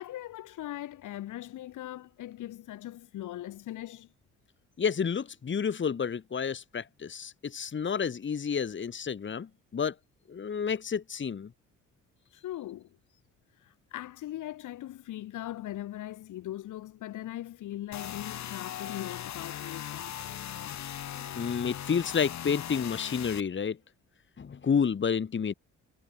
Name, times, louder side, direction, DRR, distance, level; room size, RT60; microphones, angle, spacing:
voice 1, 0.0-4.1 12.3-13.0 13.6-20.1, left 14 dB, 80° left, 4.9 m, -40 dB
voice 2, 4.8-9.9 10.3-11.5 21.2-23.8 24.4-25.5, left 6 dB, 40° left, 2.3 m, -30 dB
sound 1, 17.9-23.4, left 10 dB, 65° left, 2.8 m, -39 dB
cardioid pair, 90°, 30 cm